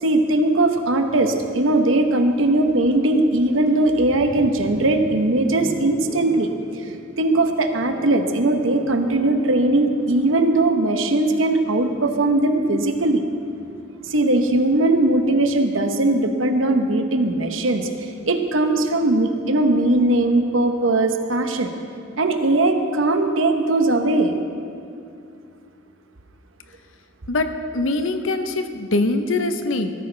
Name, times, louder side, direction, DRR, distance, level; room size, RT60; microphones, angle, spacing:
voice 1, 0.0-6.5 7.2-13.2 14.1-21.7 22.2-24.4, right 2 dB, 75° right, 6 dB, 1.0 m, -19 dB
sound 1, 3.7-15.7 16.9-20.5, equal, 10° right, 3.9 m, -43 dB
voice 2, 27.3-29.9, left 2 dB, 75° left, 8 dB, 0.8 m, -23 dB
17.0 x 14.0 x 3.4 m, 2.5 s
head